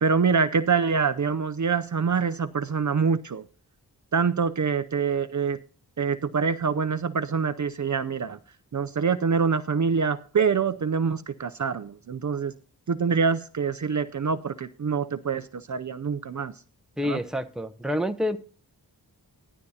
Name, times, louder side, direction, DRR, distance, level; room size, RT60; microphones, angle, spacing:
voice 1, 0.0-3.4 4.1-5.6 6.0-8.4 8.7-12.5 12.9-16.5 17.0-17.2, right 5 dB, 45° right, 11 dB, 0.5 m, -25 dB
voice 2, 17.0-18.4, left 1 dB, ahead, 9 dB, 0.8 m, -28 dB
14.5 x 11.5 x 2.8 m, 0.41 s
wide cardioid pair, 70°, 40 cm